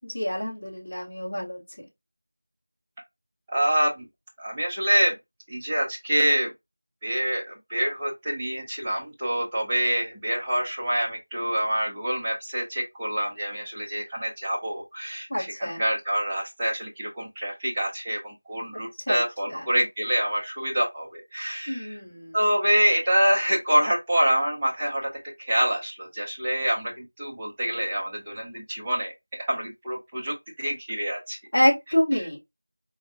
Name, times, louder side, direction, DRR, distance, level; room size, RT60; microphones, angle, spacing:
voice 1, 0.0-1.8 15.3-15.8 19.1-19.2 19.5-19.6 21.7-22.4 31.5-32.4, equal, 25° left, 1.7 m, -26 dB
voice 2, 3.5-4.1 4.4-5.1 5.5-6.5 7.0-22.0 22.3-25.1 25.4-31.4 32.1-32.2, right 1 dB, 5° right, 0.5 m, -26 dB
4.3 x 2.3 x 2.5 m
figure-of-eight pair, 180°, 0 cm